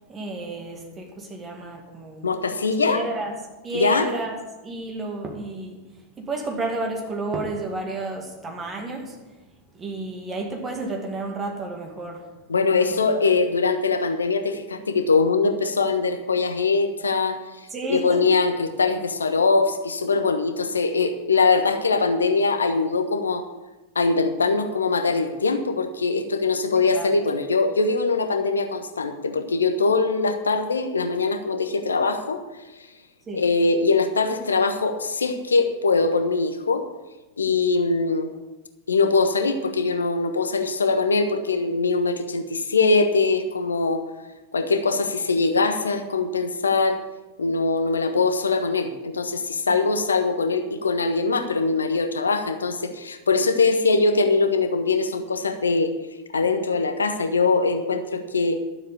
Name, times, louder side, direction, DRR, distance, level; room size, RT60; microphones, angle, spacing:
voice 1, 0.1-2.3 2.8-3.3 3.6-4.4 4.6-5.8 6.2-9.2 9.7-12.3 12.8-13.0 17.7-18.3 26.9-27.1 33.3-33.5 49.7-49.8, right 2 dB, 20° right, 2 dB, 2.1 m, -31 dB
voice 2, 2.2-3.0 3.7-4.1 12.5-17.4 17.9-23.4 23.9-32.4 33.3-36.8 37.4-38.3 38.9-44.0 44.5-47.0 47.4-55.9 56.3-58.6, left 4 dB, 75° left, 8 dB, 1.2 m, -22 dB
12.5 x 7.4 x 6.8 m, 1.1 s
figure-of-eight pair, 90°, 0 cm